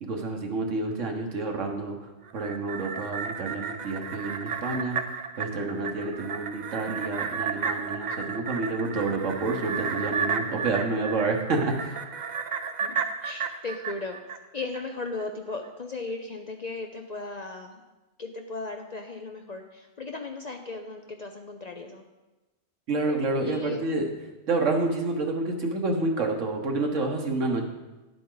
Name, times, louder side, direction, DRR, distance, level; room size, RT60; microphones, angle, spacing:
voice 1, 0.0-2.0 2.3-5.0 5.4-11.9 22.9-24.1 24.5-27.6, right 3 dB, 80° right, 3 dB, 1.5 m, -28 dB
sound 1, 2.3-14.8 15.2-15.3, right 6 dB, 55° right, 0.5 m, -33 dB
voice 2, 12.8-14.2 14.5-17.8 18.2-22.0 23.4-23.8, left 3 dB, 50° left, 4 dB, 0.5 m, -36 dB
11.0 x 7.7 x 3.9 m, 1.1 s
omnidirectional pair, 1.3 m